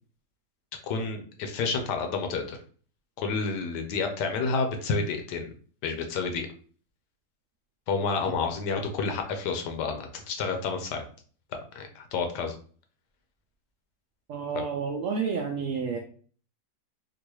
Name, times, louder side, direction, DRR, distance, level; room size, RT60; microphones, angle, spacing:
voice 1, 0.8-2.6 3.2-5.5 5.8-6.5 7.9-11.0 11.7-12.5 14.5-14.6, left 4 dB, 75° left, 5 dB, 1.2 m, -29 dB
voice 2, 14.3-16.0, right 5 dB, 75° right, 1 dB, 0.7 m, -30 dB
3.8 x 2.5 x 3.0 m, 0.44 s
omnidirectional pair, 1.9 m